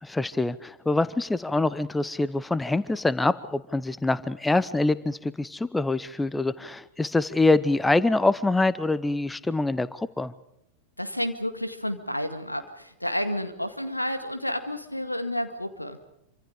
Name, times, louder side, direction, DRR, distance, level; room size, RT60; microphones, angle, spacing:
voice 1, 0.0-10.3, left 2 dB, 10° left, 18 dB, 0.8 m, -25 dB
voice 2, 11.0-16.0, equal, 85° left, 8 dB, 2.0 m, -30 dB
27.0 x 25.5 x 5.0 m, 0.76 s
figure-of-eight pair, 90°, 0 cm